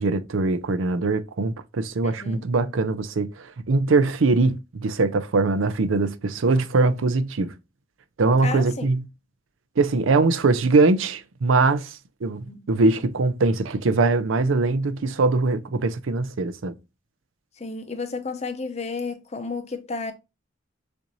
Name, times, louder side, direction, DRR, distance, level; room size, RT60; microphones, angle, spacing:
voice 1, 0.0-7.5 8.2-9.1 9.8-16.7, right 3 dB, 85° right, 0.5 m, -22 dB
voice 2, 8.4-8.9 12.4-12.7 17.6-20.1, left 4 dB, 35° left, 0.7 m, -32 dB
6.5 x 2.6 x 3.0 m
head